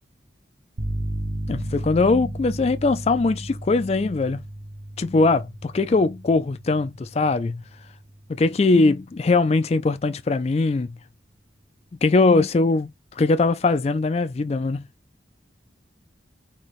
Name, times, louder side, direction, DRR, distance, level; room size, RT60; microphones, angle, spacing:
sound 1, 0.8-8.5, right 1 dB, 60° right, 1.4 m, -34 dB
voice 1, 1.5-4.4 5.0-7.6 8.3-10.9 12.0-14.9, left 3 dB, 35° left, 0.3 m, -21 dB
4.3 x 2.9 x 3.1 m
head